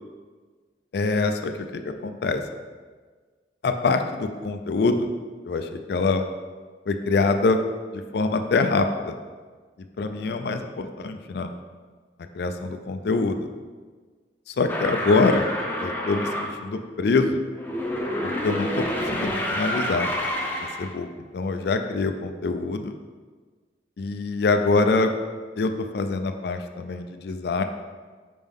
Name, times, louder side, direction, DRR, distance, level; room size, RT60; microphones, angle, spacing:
voice 1, 0.9-2.4 3.6-5.1 5.4-6.2 6.9-7.6 7.9-9.1 10.0-11.5 12.3-13.5 14.5-15.5 15.8-17.4 18.2-20.1 20.8-21.1 21.3-22.9 24.0-25.1 25.6-27.6, left 3 dB, 60° left, 7 dB, 0.4 m, -24 dB
sound 1, 14.7-16.5 17.5-20.9, equal, 10° left, 0.6 m, -28 dB
5.5 x 5.0 x 3.5 m, 1.5 s
head